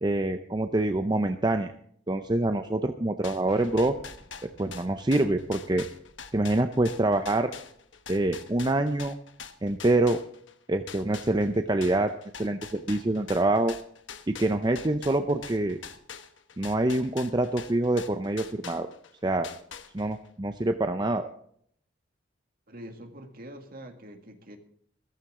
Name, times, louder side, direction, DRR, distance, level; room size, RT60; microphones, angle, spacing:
voice 1, 0.0-1.7 2.1-4.0 4.6-5.8 6.3-7.5 8.1-9.1 9.6-10.2 10.7-12.1 12.4-13.7 14.3-15.8 16.6-18.9 19.2-19.5 19.9-21.3, right 2 dB, 25° right, 7 dB, 0.6 m, -25 dB
sound 1, 3.2-10.6 10.9-19.1 19.4-20.3, left 6 dB, 75° left, 1.1 m, -44 dB
Explosion, 3.5-8.2, equal, 5° left, 7.5 m, -55 dB
voice 2, 22.7-24.6, equal, 50° right, 5 dB, 1.9 m, -44 dB
14.5 x 14.5 x 3.7 m, 0.65 s
head